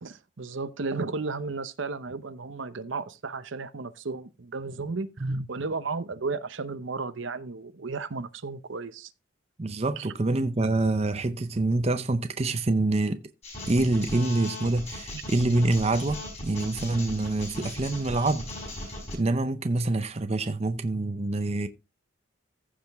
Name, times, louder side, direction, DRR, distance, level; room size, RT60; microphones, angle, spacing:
voice 1, 0.0-9.1 10.0-10.1 15.1-15.2, right 4 dB, 70° right, 0.7 m, -34 dB
voice 2, 9.6-13.3 13.7-21.7, right 2 dB, 30° right, 0.6 m, -26 dB
sound 1, 13.4-19.1, left 1 dB, 30° left, 5.1 m, -38 dB
15.0 x 5.1 x 3.5 m
head